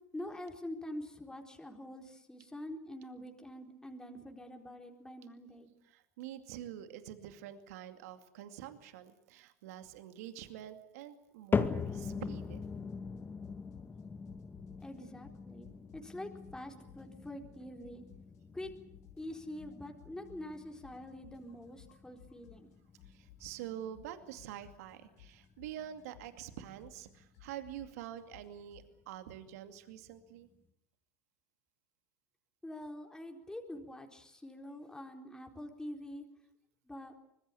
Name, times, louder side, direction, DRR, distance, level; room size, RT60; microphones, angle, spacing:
voice 1, 0.1-5.7 14.8-18.0 18.5-18.7 19.2-22.7 32.6-36.3 36.9-37.1, left 1 dB, 5° left, 3 dB, 4.2 m, -45 dB
voice 2, 5.9-12.6 23.1-30.5, right 11 dB, 70° right, 8 dB, 2.4 m, -46 dB
sound 1, 11.5-27.8 28.2-28.7 29.3-29.4 30.2-30.3, left 5 dB, 25° left, 2.0 m, -41 dB
sound 2, 11.8-11.9 12.1-14.0 14.3-16.2 16.4-18.4 18.6-22.7 23.0-28.9, left 11 dB, 75° left, 5.2 m, -59 dB
25.0 x 21.0 x 8.5 m, 0.77 s
hypercardioid pair, 90°, 9 cm